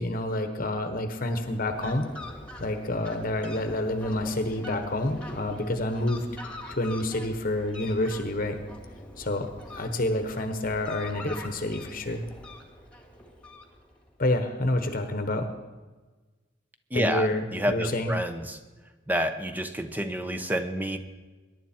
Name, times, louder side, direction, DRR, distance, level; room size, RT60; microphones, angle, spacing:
voice 1, 0.0-2.1 2.6-6.3 6.7-8.6 9.2-12.3 14.2-15.5 16.9-18.1, left 1 dB, 50° left, 7 dB, 1.2 m, -28 dB
Fowl, 1.1-14.1, left 1 dB, 5° left, 1.9 m, -44 dB
voice 2, 16.9-18.6 19.1-21.0, equal, 10° right, 8 dB, 1.0 m, -29 dB
22.0 x 11.0 x 4.4 m, 1.3 s
head